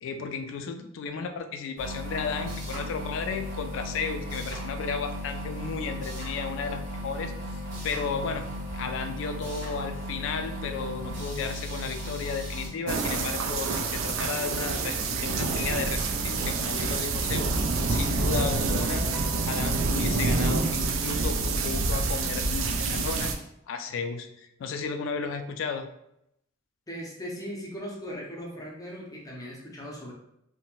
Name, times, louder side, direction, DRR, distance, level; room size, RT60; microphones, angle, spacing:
voice 1, 0.0-17.6 17.9-19.0 19.4-23.3 23.7-25.9, left 5 dB, 70° left, 7 dB, 0.3 m, -34 dB
sound 1, 1.8-12.7, equal, 65° right, 1.0 m, -36 dB
sound 2, 12.9-23.3, right 3 dB, 85° right, 0.4 m, -27 dB
Guitar, 17.9-20.7, equal, 50° right, 0.7 m, -44 dB
voice 2, 26.9-30.1, equal, 20° left, -2 dB, 0.6 m, -38 dB
2.6 x 2.1 x 2.9 m, 0.79 s
head